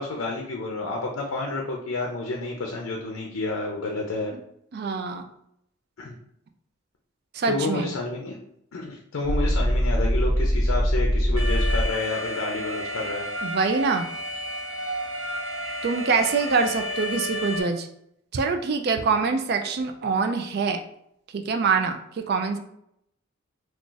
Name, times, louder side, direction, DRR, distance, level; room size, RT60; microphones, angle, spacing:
voice 1, 0.0-4.3 6.0-6.1 7.4-8.4 8.7-13.2 19.0-19.1, left 2 dB, 85° left, 0 dB, 0.5 m, -30 dB
voice 2, 4.7-5.3 7.3-7.9 13.4-14.1 15.8-17.9 18.3-20.8 21.3-22.6, right 4 dB, 50° right, 7 dB, 0.3 m, -25 dB
sound 1, 9.2-11.9, equal, 20° left, 1.0 m, -22 dB
Alarm, 11.4-17.6, equal, 65° right, 0.8 m, -31 dB
2.4 x 2.4 x 3.8 m, 0.75 s
head